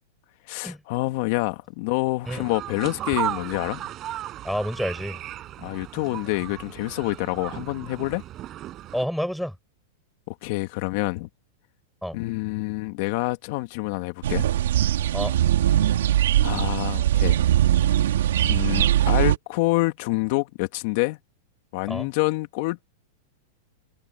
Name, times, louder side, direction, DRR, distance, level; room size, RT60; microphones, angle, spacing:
voice 1, 0.5-3.9 5.6-8.2 10.3-11.3 12.1-14.5 16.4-17.4 18.4-21.2 21.7-22.9, left 22 dB, 50° left, 2.4 m, -27 dB
sound 1, 2.3-9.1, right 13 dB, 30° right, 5.8 m, -35 dB
voice 2, 4.4-5.2 8.9-9.5 12.0-12.2 15.1-15.3 21.9-22.1, equal, ahead, 8.0 m, -28 dB
sound 2, 14.2-19.4, right 12 dB, 80° right, 2.1 m, -21 dB
supercardioid pair, 145°, 0 cm